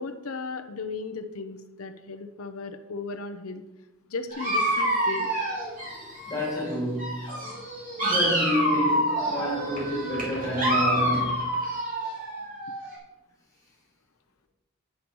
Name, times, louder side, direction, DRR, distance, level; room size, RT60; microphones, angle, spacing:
voice 1, 0.0-3.6 4.1-5.3, left 3 dB, 75° left, 0.7 m, -36 dB
Dog, 4.3-6.7 7.0-12.9, right 1 dB, 35° right, 2.7 m, -27 dB
voice 2, 6.3-7.3 8.0-11.5, equal, 15° left, 3.0 m, -29 dB
9.0 x 6.1 x 5.3 m
head